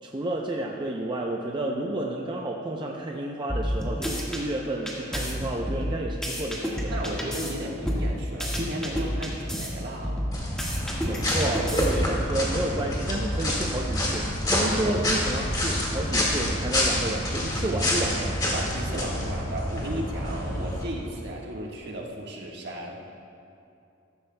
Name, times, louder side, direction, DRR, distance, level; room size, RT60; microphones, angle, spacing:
voice 1, 0.0-6.9 11.0-18.4, right 1 dB, 25° right, 0 dB, 0.6 m, -31 dB
sound 1, 3.5-4.4 4.9-7.5 7.8-9.7 10.0-12.2, equal, 5° left, 1.6 m, -30 dB
voice 2, 6.9-10.2 14.6-15.0 18.5-23.0, right 1 dB, 60° right, -2 dB, 1.5 m, -35 dB
sound 2, 10.3-20.8, left 1 dB, 20° left, 1.8 m, -27 dB
14.5 x 13.5 x 2.2 m, 2.6 s
head